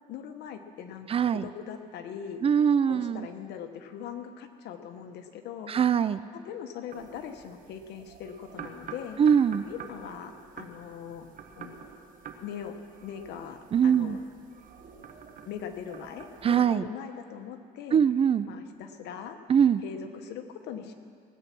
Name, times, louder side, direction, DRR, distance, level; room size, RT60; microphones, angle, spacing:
voice 1, 0.1-2.4 2.9-5.7 6.3-9.2 9.7-11.3 11.6-11.7 12.4-14.2 15.5-18.0 18.5-19.4 19.8-20.9, left 8 dB, 80° left, 7 dB, 1.2 m, -41 dB
voice 2, 1.1-1.4 2.4-3.3 5.7-6.2 9.2-9.6 13.7-14.2 16.4-16.8 17.9-18.5 19.5-19.8, right 7 dB, 35° right, 15 dB, 0.4 m, -22 dB
sound 1, 6.9-16.6, right 6 dB, 55° right, 1.4 m, -47 dB
19.5 x 8.5 x 6.1 m, 2.2 s
cardioid pair, 110°, 17 cm